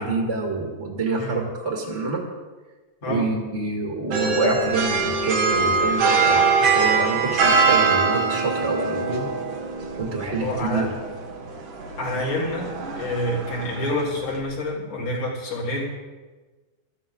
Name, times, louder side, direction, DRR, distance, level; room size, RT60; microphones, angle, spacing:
voice 1, 0.0-2.2 3.1-9.3 10.0-10.4 10.7-10.9, right 3 dB, 25° right, 0 dB, 2.0 m, -26 dB
sound 1, 4.1-14.4, right 4 dB, 85° right, 3.6 m, -23 dB
voice 2, 10.4-10.9 12.0-15.8, left 1 dB, 80° left, -6 dB, 5.5 m, -28 dB
21.5 x 14.0 x 3.9 m, 1.3 s
omnidirectional pair, 3.5 m